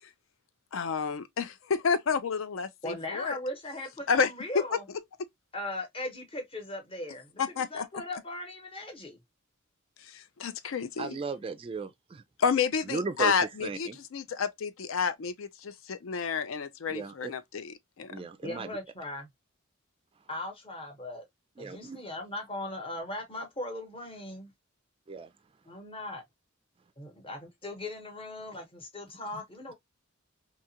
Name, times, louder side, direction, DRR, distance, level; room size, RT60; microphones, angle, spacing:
voice 1, 0.7-3.4 4.1-4.3 4.5-4.6 7.4-7.9 10.1-11.2 12.4-18.3, left 6 dB, 70° left, 0.4 m, -30 dB
voice 2, 2.8-4.8 5.5-9.2 18.4-19.3 20.3-21.2 21.6-24.5 25.7-26.2 27.0-29.7, left 1 dB, 25° left, 0.9 m, -39 dB
voice 3, 11.0-12.2 12.9-14.0 16.9-17.3 18.1-18.7 21.6-22.0 25.1-25.3, right 4 dB, 25° right, 0.3 m, -36 dB
2.8 x 2.4 x 2.7 m
head